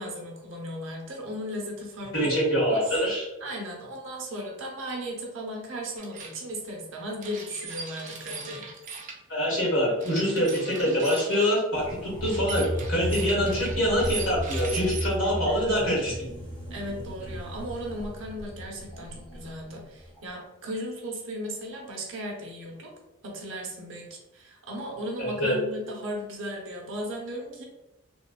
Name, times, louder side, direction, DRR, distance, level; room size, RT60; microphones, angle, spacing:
voice 1, 0.0-2.4 2.7-3.0 3.4-8.7 16.7-22.9 23.2-27.6, equal, 70° right, 0 dB, 0.7 m, -36 dB
voice 2, 2.1-3.3 9.3-16.1 25.2-25.6, equal, 75° left, -5 dB, 1.4 m, -25 dB
sound 1, 6.0-6.4 7.2-9.2 10.0-11.5 12.2-15.0, right 4 dB, 40° right, 0.4 m, -40 dB
sound 2, 11.7-19.6 20.0-20.2, equal, 25° left, 0.6 m, -35 dB
3.2 x 2.2 x 2.4 m, 1.0 s
head